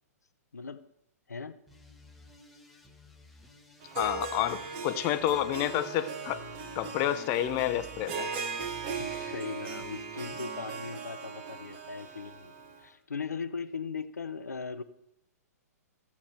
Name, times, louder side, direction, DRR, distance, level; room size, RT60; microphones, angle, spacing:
voice 1, 0.5-0.9 1.3-1.6 9.0-12.5 12.8-14.8, left 5 dB, 85° left, 11 dB, 0.6 m, -39 dB
sound 1, 1.7-10.9, equal, ahead, 1.3 m, -52 dB
Harp, 3.8-12.8, right 5 dB, 45° right, 1.4 m, -39 dB
voice 2, 3.9-6.4 6.8-8.3, left 12 dB, 35° left, 11 dB, 0.7 m, -29 dB
15.0 x 7.2 x 4.4 m, 0.84 s
figure-of-eight pair, 115°, 9 cm